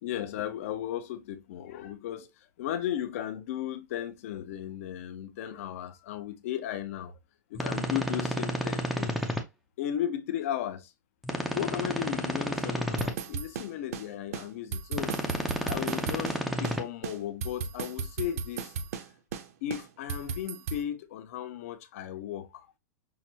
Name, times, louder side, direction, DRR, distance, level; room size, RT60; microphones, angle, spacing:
voice 1, 0.0-2.3 2.6-7.1 7.5-9.2 9.8-10.9 11.5-15.1 15.6-18.7 19.6-22.7, left 11 dB, 50° left, 0.6 m, -35 dB
sound 1, 7.5-9.4 11.2-13.1 14.9-16.8, equal, ahead, 0.4 m, -31 dB
sound 2, 13.0-14.1 14.3-14.5 14.7-16.4 16.6-16.8 17.0-19.1 19.3-19.5 19.7-20.8, right 6 dB, 50° right, 0.6 m, -35 dB
5.8 x 2.0 x 2.6 m
supercardioid pair, 165°, 10 cm